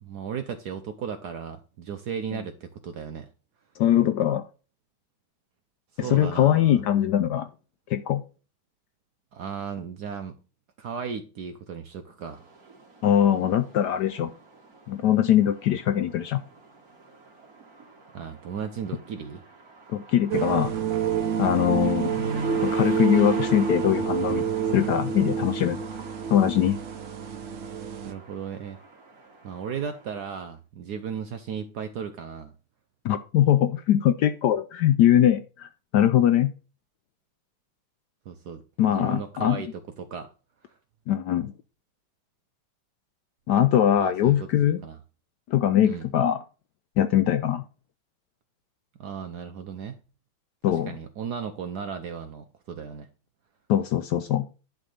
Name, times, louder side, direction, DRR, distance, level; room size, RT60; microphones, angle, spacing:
voice 1, 0.0-3.3 5.9-6.8 9.3-10.4 10.8-12.5 18.1-19.4 28.0-28.8 29.4-32.5 38.3-40.3 40.7-40.8 44.0-45.0 45.8-46.1 49.0-50.0 50.7-53.1, right 7 dB, 65° right, 1.1 m, -36 dB
voice 2, 3.8-4.4 6.0-7.5 7.9-8.2 13.0-14.3 14.9-16.4 19.9-20.7 21.4-22.2 22.6-24.4 24.7-25.8 26.3-26.8 33.0-35.7 35.9-36.5 38.8-39.6 41.1-41.5 43.5-44.8 45.5-46.4 47.0-47.6 50.6-50.9 53.7-54.4, left 11 dB, 75° left, 1.0 m, -22 dB
sound 1, 12.3-30.4, right 3 dB, 45° right, 2.1 m, -46 dB
sound 2, 20.3-28.1, right 7 dB, 90° right, 0.6 m, -28 dB
10.5 x 3.6 x 6.5 m
omnidirectional pair, 2.2 m